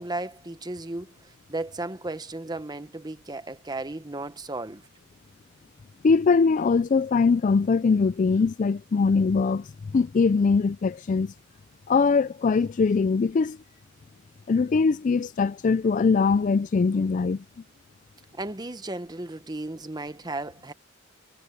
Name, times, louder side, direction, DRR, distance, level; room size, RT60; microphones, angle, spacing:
voice 1, 0.0-4.8 18.4-20.7, right 2 dB, 20° right, 0.9 m, -35 dB
voice 2, 6.0-9.7 9.9-11.3 11.9-13.6 14.5-17.4, left 4 dB, 40° left, 0.3 m, -22 dB
head